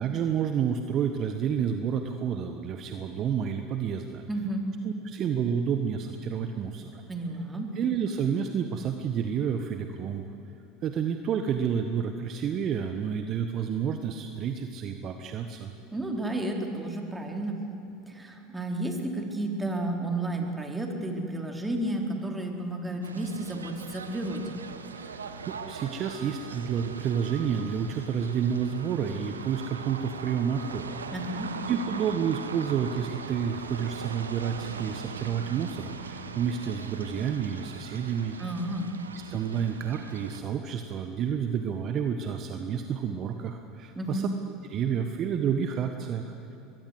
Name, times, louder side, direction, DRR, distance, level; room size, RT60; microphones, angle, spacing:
voice 1, 0.0-4.2 4.8-7.0 7.7-10.2 10.8-15.7 25.0-31.0 31.3-38.4 39.3-44.3 44.7-46.6, right 7 dB, 45° right, 6 dB, 1.4 m, -30 dB
voice 2, 4.3-4.7 7.1-7.7 15.9-17.6 18.1-24.6 31.1-31.5 38.4-38.9 44.0-44.3, right 1 dB, 15° right, 2 dB, 4.1 m, -32 dB
sound 1, 23.0-40.4, right 5 dB, 85° right, 1.2 m, -40 dB
23.0 x 22.0 x 8.0 m, 3.0 s
figure-of-eight pair, 75°, 0 cm